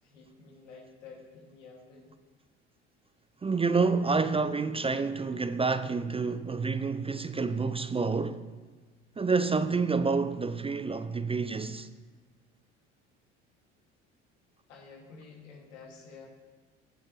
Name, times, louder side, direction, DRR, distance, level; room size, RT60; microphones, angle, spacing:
voice 1, 0.0-2.1 14.7-16.3, left 4 dB, 80° left, 2.4 m, -50 dB
voice 2, 3.4-8.4 9.2-11.9, right 4 dB, 15° right, 0.5 m, -28 dB
15.0 x 8.7 x 3.2 m
hypercardioid pair, 60°, 36 cm